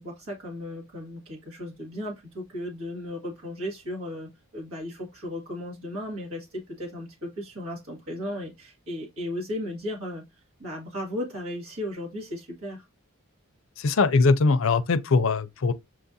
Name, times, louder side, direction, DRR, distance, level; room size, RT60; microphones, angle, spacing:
voice 1, 0.0-10.2 10.6-12.8, left 1 dB, 75° right, 1.6 m, -35 dB
voice 2, 13.8-15.7, left 4 dB, 65° left, 0.5 m, -21 dB
7.4 x 2.5 x 2.6 m
head